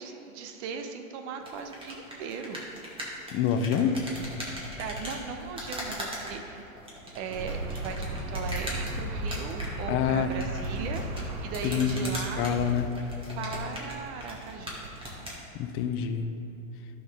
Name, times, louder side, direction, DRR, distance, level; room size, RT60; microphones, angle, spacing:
voice 1, 0.0-2.7 4.7-6.8 7.1-11.0 11.4-12.6 13.4-14.9, right 6 dB, 50° right, 6 dB, 0.9 m, -38 dB
sound 1, 1.4-15.4, equal, 10° right, 2.0 m, -40 dB
voice 2, 3.3-4.0 9.9-10.3 11.6-12.9 15.5-16.3, left 7 dB, 30° left, 7 dB, 0.6 m, -27 dB
sound 2, 7.3-12.9, right 1 dB, 80° right, 1.5 m, -35 dB
11.5 x 6.3 x 3.5 m, 3.0 s
hypercardioid pair, 115°, 43 cm